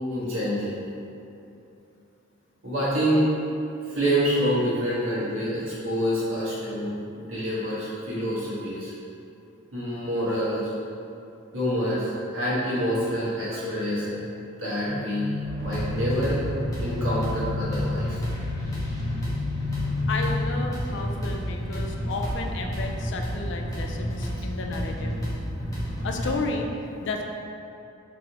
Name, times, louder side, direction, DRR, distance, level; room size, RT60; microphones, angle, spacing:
voice 1, 0.1-0.8 2.6-3.3 3.9-8.9 9.7-10.6 11.5-14.3 14.6-15.3 15.6-16.4 16.8-18.2, equal, 75° right, -8 dB, 1.3 m, -27 dB
sound 1, 14.9-20.4, left 4 dB, 30° right, 0.8 m, -32 dB
sound 2, 15.4-26.3, equal, 15° left, 0.8 m, -30 dB
voice 2, 20.1-25.2 26.0-26.7 27.0-27.2, left 3 dB, 60° left, 2 dB, 0.4 m, -32 dB
4.1 x 3.3 x 2.9 m, 2.8 s
head